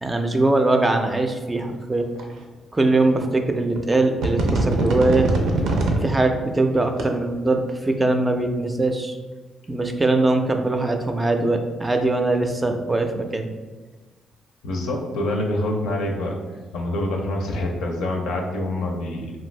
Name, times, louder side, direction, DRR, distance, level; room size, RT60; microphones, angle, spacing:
voice 1, 0.0-2.1 2.7-5.3 6.0-9.2 9.7-13.5, right 2 dB, 20° right, 5 dB, 0.3 m, -21 dB
sound 1, 2.2-2.3 3.2-3.3 3.8-3.9 4.2-6.0 6.7-7.0, right 2 dB, 80° right, 0.5 m, -22 dB
voice 2, 14.6-16.4 16.7-19.3, left 1 dB, 90° left, 1 dB, 0.5 m, -26 dB
2.6 x 2.5 x 3.1 m, 1.3 s
cardioid pair, 90°, 0 cm